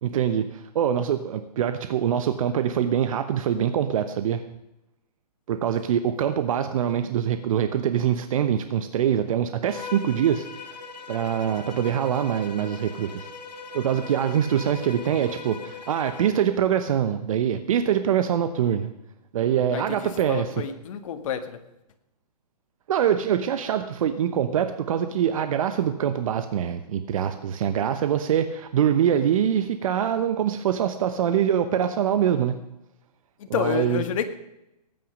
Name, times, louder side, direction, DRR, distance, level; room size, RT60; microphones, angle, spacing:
voice 1, 0.0-4.4 5.5-10.5 11.1-13.3 13.7-18.9 19.3-20.6 22.9-32.6 33.5-34.0, right 9 dB, 55° right, 10 dB, 1.0 m, -24 dB
Bowed string instrument, 9.7-16.4, left 4 dB, 80° left, 2.2 m, -40 dB
voice 2, 19.7-21.6 33.5-34.3, left 8 dB, 50° left, 7 dB, 1.7 m, -29 dB
19.0 x 9.3 x 5.2 m, 0.90 s
hypercardioid pair, 140°, 21 cm